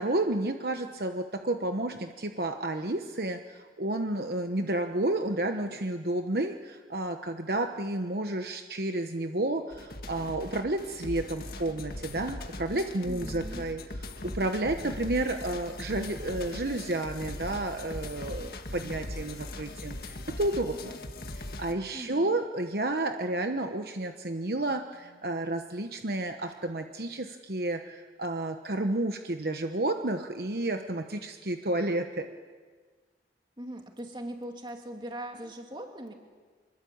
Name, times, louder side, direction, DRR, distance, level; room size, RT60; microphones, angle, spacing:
voice 1, 0.0-20.9 21.3-32.3, right 2 dB, 60° right, 5 dB, 1.1 m, -31 dB
sound 1, 9.7-21.7, left 1 dB, 55° left, 1.8 m, -40 dB
voice 2, 13.1-13.6 21.9-22.4 33.6-36.1, right 1 dB, 25° right, 2 dB, 3.0 m, -40 dB
25.5 x 21.5 x 8.7 m, 1.5 s
head